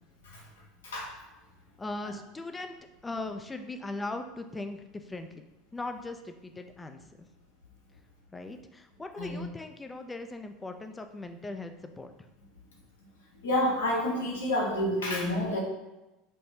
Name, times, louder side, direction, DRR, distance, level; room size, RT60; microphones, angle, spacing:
voice 1, 0.8-1.2 9.2-9.4 13.4-15.6, left 1 dB, 90° left, -2 dB, 1.1 m, -29 dB
voice 2, 1.8-2.7 3.0-5.4 5.7-7.0 8.3-12.3, left 2 dB, 15° left, 7 dB, 0.4 m, -39 dB
5.3 x 2.0 x 2.7 m, 1.0 s
hypercardioid pair, 95°, 0 cm